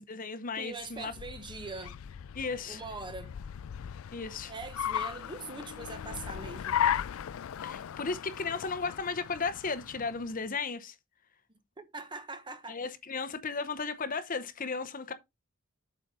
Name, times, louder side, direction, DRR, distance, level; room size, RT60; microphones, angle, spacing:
voice 1, 0.0-1.1 2.3-2.8 4.1-4.5 7.6-11.0 12.7-15.1, left 4 dB, 40° left, 0.8 m, -35 dB
voice 2, 0.6-2.0 2.7-3.3 4.5-6.8 11.8-12.8, right 3 dB, 20° right, 0.9 m, -42 dB
Car, 0.8-10.4, left 9 dB, 65° left, 0.3 m, -36 dB
7.8 x 5.0 x 4.1 m
head